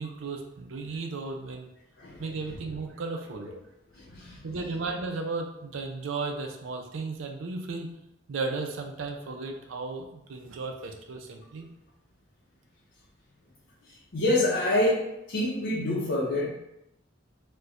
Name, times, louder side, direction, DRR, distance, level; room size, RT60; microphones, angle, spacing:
voice 1, 0.0-1.7 2.2-3.5 4.4-7.9 8.3-11.7, right 3 dB, 85° right, 3 dB, 0.5 m, -35 dB
voice 2, 4.0-4.4 14.1-16.5, left 1 dB, 70° left, -6 dB, 0.7 m, -26 dB
4.3 x 2.2 x 2.5 m, 0.83 s
head